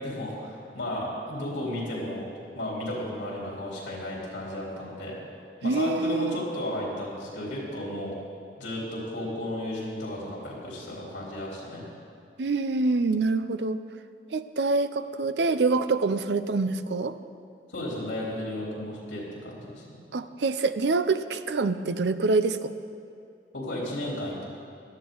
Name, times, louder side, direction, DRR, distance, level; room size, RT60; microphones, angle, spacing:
voice 1, 0.0-2.2 2.5-5.2 5.6-8.1 8.6-11.8 17.7-20.0 23.5-24.4, left 1 dB, 80° left, -4 dB, 3.7 m, -34 dB
voice 2, 5.6-6.4 12.4-13.8 14.3-17.1 20.1-22.7, right 3 dB, 70° right, 11 dB, 0.5 m, -26 dB
17.0 x 12.5 x 3.9 m, 2.5 s
head